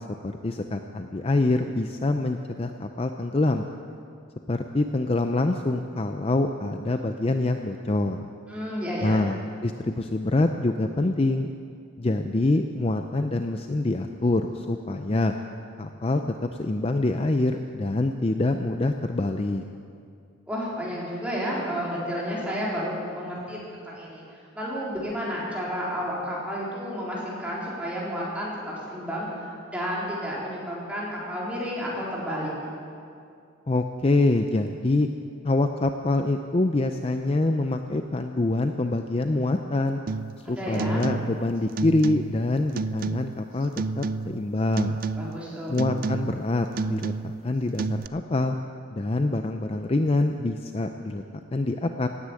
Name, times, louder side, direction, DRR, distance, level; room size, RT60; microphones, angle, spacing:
voice 1, 0.2-3.7 4.5-8.2 9.0-9.4 9.6-11.5 12.0-15.3 15.8-19.6 33.7-35.1 35.4-40.0 40.5-45.0 45.7-48.6 48.9-52.1, left 2 dB, 30° left, 6 dB, 0.5 m, -25 dB
voice 2, 8.5-9.2 20.5-24.2 24.5-29.3 29.7-32.5 40.4-41.0 45.2-45.8, equal, 5° right, -6 dB, 3.8 m, -31 dB
sound 1, 40.1-40.4 40.7-41.4 41.7-42.4 42.8-43.4 43.8-44.5 44.8-45.4 45.8-46.4 46.7-47.4 47.8-48.1, right 3 dB, 45° right, 0.4 m, -30 dB
17.0 x 10.0 x 8.5 m, 2.4 s
head